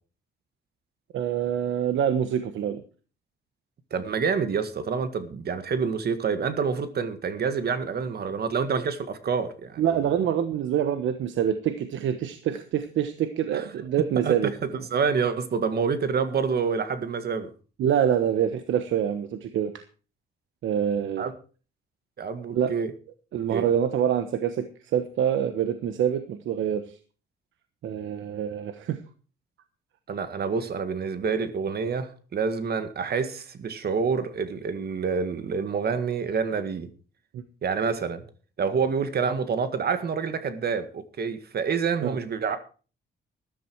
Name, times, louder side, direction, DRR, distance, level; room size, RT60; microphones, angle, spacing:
voice 1, 1.1-2.8 9.8-14.5 17.8-19.7 20.6-21.2 22.5-22.7 23.3-24.7 24.9-27.0 27.8-29.0 37.3-37.4 42.0-42.2, right 9 dB, 75° right, 9 dB, 1.2 m, -26 dB
voice 2, 3.9-10.1 13.5-13.6 14.2-17.5 21.2-21.3 22.2-22.9 23.5-23.7 30.1-36.9 37.6-38.2 38.6-42.6, right 5 dB, 55° right, 10 dB, 1.8 m, -27 dB
13.5 x 11.5 x 4.6 m, 0.37 s
cardioid pair, 90°, 20 cm